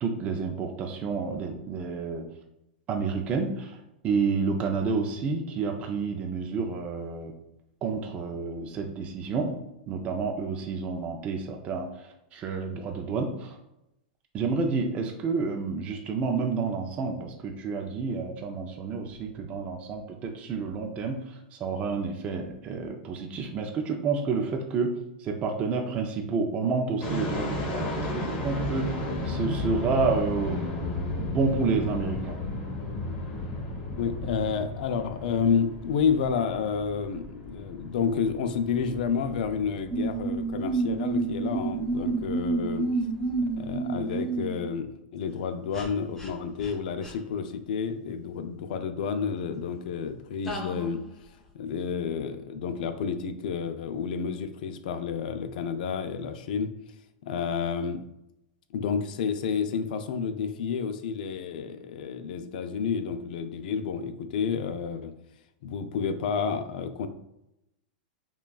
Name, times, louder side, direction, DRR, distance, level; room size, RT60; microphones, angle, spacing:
voice 1, 0.0-2.3 2.9-7.3 7.8-13.6 14.3-30.6 31.2-32.4, right 4 dB, 25° right, 2 dB, 0.4 m, -30 dB
sound 1, 27.0-43.7, left 2 dB, 30° left, 1.1 m, -34 dB
voice 2, 34.0-42.9 43.4-51.0 51.5-56.7 57.2-58.0 58.7-65.1 65.6-67.1, left 6 dB, 65° left, 9 dB, 0.5 m, -30 dB
sound 2, 39.9-44.7 45.7-45.9 46.2-46.3 46.6-46.7 47.0-47.1 50.5-51.0, right 3 dB, 10° left, 0.8 m, -29 dB
5.5 x 2.3 x 2.3 m, 0.87 s
supercardioid pair, 145°, 5 cm